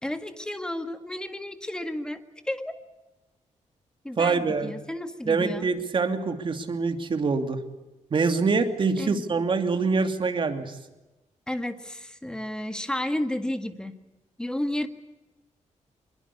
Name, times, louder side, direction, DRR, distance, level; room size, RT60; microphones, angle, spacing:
voice 1, 0.0-2.7 4.0-5.7 9.0-9.2 11.5-14.0 14.4-14.9, left 1 dB, 5° left, 8 dB, 1.8 m, -32 dB
voice 2, 4.2-4.7 5.2-7.6 8.1-10.7, right 4 dB, 40° right, 7 dB, 2.7 m, -25 dB
25.5 x 22.5 x 8.4 m, 1.0 s
wide cardioid pair, 150°, 13 cm